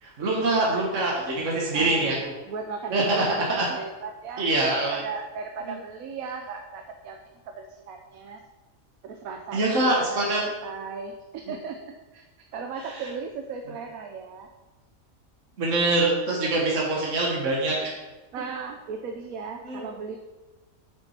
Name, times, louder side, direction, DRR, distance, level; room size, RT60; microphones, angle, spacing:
voice 1, 0.0-2.1 2.9-3.7 4.4-5.0 5.7-5.8 9.5-10.4 15.6-17.9 19.6-19.9, right 2 dB, 65° right, -3 dB, 1.7 m, -24 dB
voice 2, 1.7-4.5 4.7-7.2 7.4-8.4 9.0-10.2 10.5-14.5 18.3-20.2, right 5 dB, 90° right, 5 dB, 1.1 m, -37 dB
9.0 x 5.7 x 4.3 m, 1.2 s
omnidirectional pair, 1.4 m